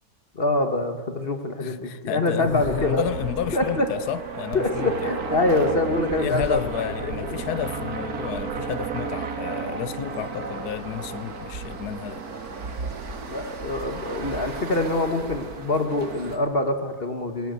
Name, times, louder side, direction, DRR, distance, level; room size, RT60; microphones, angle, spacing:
voice 1, 0.3-3.0 3.5-3.9 4.5-6.6 7.0-7.1 13.3-17.5, left 2 dB, 40° left, 1.5 m, -25 dB
voice 2, 1.6-5.1 6.2-12.2, left 10 dB, 80° left, 1.3 m, -31 dB
sound 1, 2.4-16.4, right 4 dB, 70° right, 2.2 m, -33 dB
18.5 x 17.5 x 8.1 m
omnidirectional pair, 1.7 m